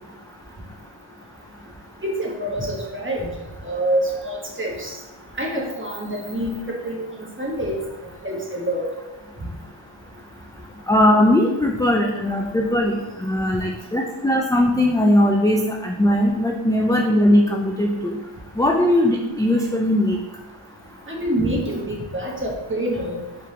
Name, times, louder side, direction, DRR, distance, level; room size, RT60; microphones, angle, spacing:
voice 1, 2.0-3.3 3.6-4.9 5.4-7.1 7.4-7.8 8.2-8.9 21.1-23.2, right 1 dB, 25° right, -2 dB, 1.2 m, -26 dB
voice 2, 10.9-18.2 18.6-20.2, left 1 dB, 10° left, 1 dB, 0.3 m, -19 dB
4.5 x 3.8 x 2.8 m, 1.1 s
wide cardioid pair, 45°, 50 cm